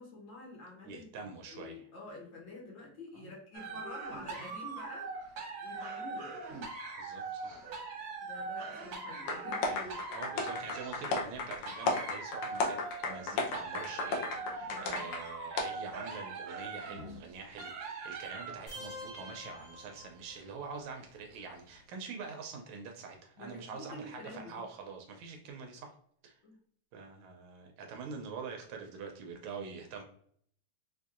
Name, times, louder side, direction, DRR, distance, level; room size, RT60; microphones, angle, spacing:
voice 1, 0.0-6.4 8.2-9.6 14.7-15.3 23.4-24.6 26.4-26.6, left 2 dB, 60° left, -3 dB, 1.6 m, -48 dB
voice 2, 0.9-1.8 3.1-3.3 4.4-4.5 6.9-7.6 9.7-25.9 26.2-26.4 26.9-30.0, right 5 dB, 85° right, 3 dB, 1.5 m, -45 dB
sound 1, 3.5-18.7 19.6-19.9 20.4-20.5, right 3 dB, 65° right, 1.6 m, -42 dB
sound 2, 9.3-15.2 15.6-15.7, left 3 dB, 85° left, 1.7 m, -34 dB
sound 3, 18.7-20.6, left 1 dB, 45° left, 1.4 m, -47 dB
4.4 x 2.6 x 2.4 m, 0.63 s
omnidirectional pair, 2.4 m